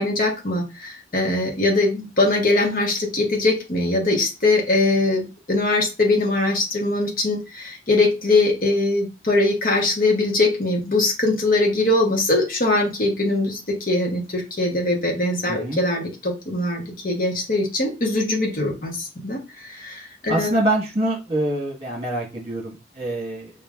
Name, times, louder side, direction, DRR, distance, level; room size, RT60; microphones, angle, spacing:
voice 1, 0.0-20.5, left 2 dB, 50° left, 1 dB, 1.1 m, -22 dB
voice 2, 15.5-15.8 20.3-23.5, right 1 dB, 35° right, -1 dB, 1.4 m, -25 dB
5.2 x 3.0 x 2.4 m, 0.27 s
head